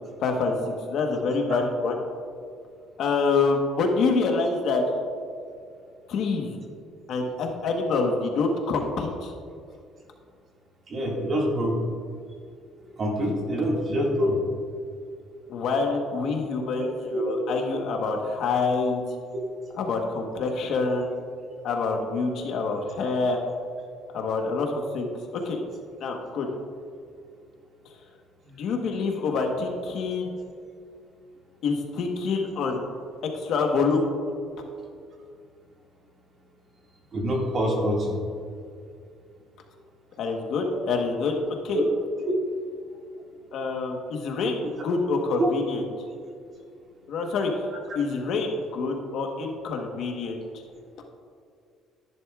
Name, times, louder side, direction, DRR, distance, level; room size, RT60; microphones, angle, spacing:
voice 1, 0.2-1.9 3.0-4.8 6.1-6.6 7.1-9.3 15.5-16.9 17.1-19.0 19.8-21.0 21.6-23.4 24.1-25.1 25.4-25.6 26.0-26.5 28.5-30.3 31.6-32.8 33.4-34.0 40.2-41.4 41.6-41.8 43.5-45.8 47.1-47.7 47.9-50.4, left 4 dB, 50° left, 2 dB, 1.1 m, -26 dB
voice 2, 10.9-11.7 13.0-14.4 16.7-17.2 37.1-38.1 41.7-41.8 42.2-42.3 45.4-45.5, equal, 30° right, -2 dB, 1.9 m, -25 dB
14.0 x 11.0 x 2.4 m, 2.3 s
cardioid pair, 170°, 0 cm